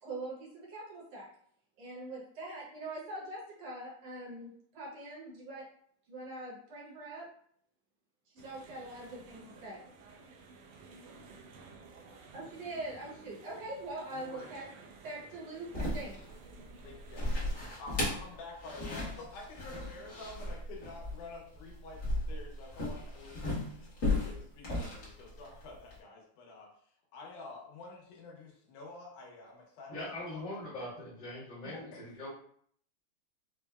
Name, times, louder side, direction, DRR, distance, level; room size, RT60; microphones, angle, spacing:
voice 1, 0.0-1.3 1.8-5.7 6.1-7.3 8.3-9.8 12.3-14.6 15.0-16.2, right 2 dB, 65° right, -4 dB, 1.8 m, -43 dB
sound 1, 8.4-17.7, right 4 dB, 85° right, 1.4 m, -54 dB
voice 2, 14.1-14.5 16.8-17.4 17.8-23.9 24.2-30.0 30.3-30.4 31.6-32.2, left 3 dB, 85° left, -1 dB, 2.4 m, -49 dB
sound 2, 15.7-26.0, left 2 dB, 65° left, 0.8 m, -36 dB
voice 3, 29.9-32.3, left 1 dB, 35° left, -9 dB, 0.8 m, -41 dB
6.0 x 2.0 x 2.3 m, 0.62 s
omnidirectional pair, 3.5 m